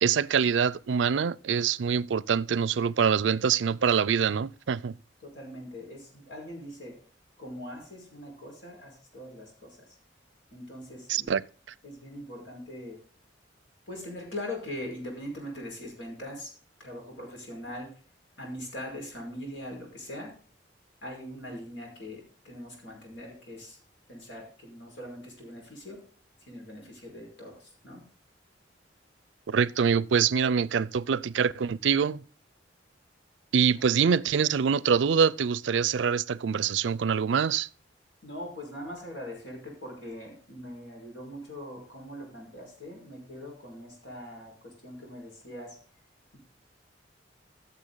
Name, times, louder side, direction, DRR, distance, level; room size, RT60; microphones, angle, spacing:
voice 1, 0.0-4.9 11.1-11.4 29.5-32.2 33.5-37.7, right 6 dB, 80° right, 0.4 m, -25 dB
voice 2, 5.2-7.0 7.4-9.9 10.5-11.3 11.8-13.0 13.9-16.5 16.8-17.9 18.4-20.3 21.0-23.8 24.1-26.0 26.4-28.0 38.2-45.8, left 1 dB, 80° left, 5.2 m, -41 dB
15.0 x 6.7 x 3.9 m
head